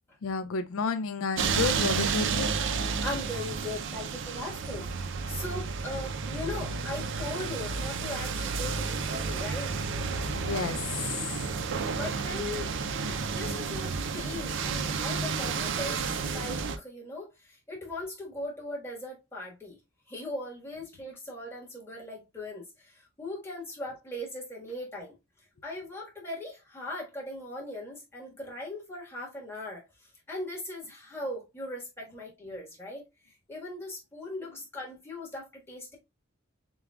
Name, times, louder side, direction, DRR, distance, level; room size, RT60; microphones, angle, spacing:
voice 1, 0.2-2.8 10.3-11.3, left 4 dB, 90° left, 0.4 m, -31 dB
sound 1, 1.4-16.8, right 5 dB, 65° right, 0.5 m, -31 dB
voice 2, 3.0-9.7 11.9-19.8 20.1-25.1 25.6-29.8 30.3-33.0 33.5-36.0, left 1 dB, 10° left, 1.4 m, -39 dB
6.8 x 2.3 x 2.3 m
head